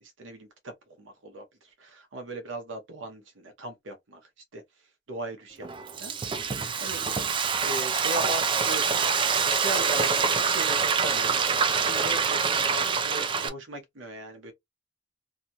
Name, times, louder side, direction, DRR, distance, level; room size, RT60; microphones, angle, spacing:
voice 1, 0.0-4.2 4.5-4.6 5.1-6.5 6.8-7.3 7.6-9.0 9.3-11.4 11.8-14.5, right 1 dB, 75° right, 0.8 m, -38 dB
Frying (food), 5.6-13.5, right 5 dB, 25° right, 0.3 m, -25 dB
2.8 x 2.3 x 2.7 m
head